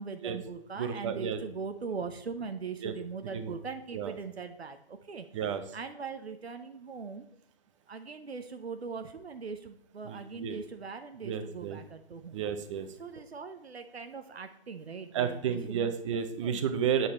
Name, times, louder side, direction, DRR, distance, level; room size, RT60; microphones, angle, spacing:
voice 1, 0.0-5.3 5.7-7.3 7.9-12.4 13.0-15.9 16.4-16.6, right 5 dB, 90° right, 8 dB, 0.8 m, -40 dB
voice 2, 0.8-1.4 2.8-2.9 3.3-3.5 3.9-4.1 5.3-5.6 10.1-10.6 11.2-11.8 12.3-12.9 15.1-17.1, right 8 dB, 30° right, 10 dB, 0.8 m, -32 dB
8.2 x 6.5 x 4.2 m, 0.78 s
figure-of-eight pair, 135°, 31 cm